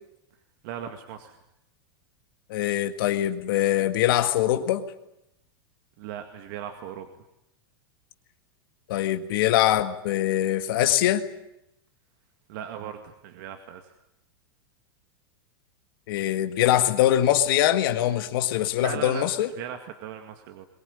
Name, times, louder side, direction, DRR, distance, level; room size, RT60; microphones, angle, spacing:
voice 1, 0.6-1.4 6.0-7.1 12.5-13.9 18.8-20.7, right 9 dB, 60° right, 6 dB, 2.1 m, -38 dB
voice 2, 2.5-4.8 8.9-11.2 16.1-19.5, left 12 dB, 65° left, 8 dB, 1.9 m, -23 dB
22.5 x 19.0 x 9.8 m, 0.84 s
hypercardioid pair, 120°, 12 cm